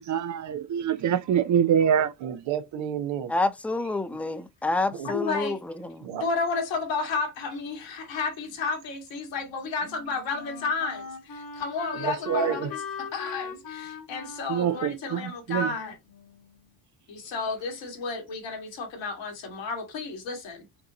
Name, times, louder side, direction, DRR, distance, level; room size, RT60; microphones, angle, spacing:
voice 1, 0.0-2.1 14.5-15.7, right 8 dB, 40° right, 0.5 m, -25 dB
voice 2, 2.2-3.3 4.9-5.1 6.0-6.2 11.9-12.7, right 8 dB, 75° right, 1.0 m, -30 dB
voice 3, 3.3-6.1, left 2 dB, 5° left, 0.6 m, -28 dB
voice 4, 5.0-5.6 6.2-16.0 17.1-20.7, left 4 dB, 75° left, 1.9 m, -32 dB
Wind instrument woodwind instrument, 9.3-16.6, left 6 dB, 45° left, 1.5 m, -40 dB
5.8 x 2.5 x 2.9 m
hypercardioid pair, 55°, 46 cm